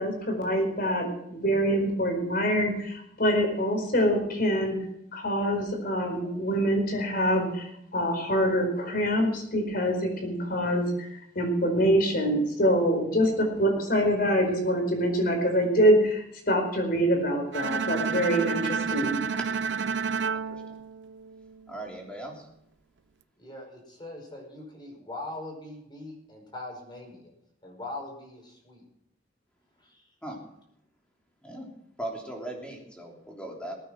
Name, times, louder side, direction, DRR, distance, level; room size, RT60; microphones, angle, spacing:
voice 1, 0.0-4.8 5.1-11.1 11.3-19.2, equal, 55° left, 4 dB, 4.6 m, -25 dB
Bowed string instrument, 17.5-21.7, right 5 dB, 80° right, 0.6 m, -30 dB
voice 2, 21.7-22.4 30.2-30.4 31.4-31.7 32.0-33.8, right 1 dB, 5° left, -1 dB, 3.4 m, -38 dB
voice 3, 23.4-27.3 27.6-28.8 29.8-30.1, left 2 dB, 25° left, 1 dB, 5.2 m, -41 dB
20.0 x 9.2 x 6.2 m, 0.75 s
head